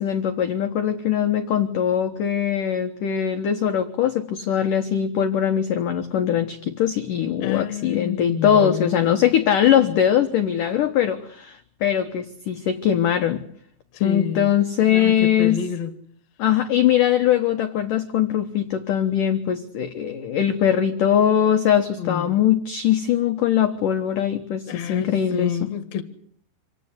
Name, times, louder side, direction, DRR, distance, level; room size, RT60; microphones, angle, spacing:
voice 1, 0.0-13.4 14.0-15.6 16.4-25.7, left 9 dB, 85° left, 1.8 m, -21 dB
voice 2, 7.4-9.2 13.9-14.5 14.9-15.9 22.0-22.4 24.7-26.0, left 8 dB, 60° left, 1.9 m, -29 dB
26.5 x 17.0 x 9.7 m
omnidirectional pair, 5.7 m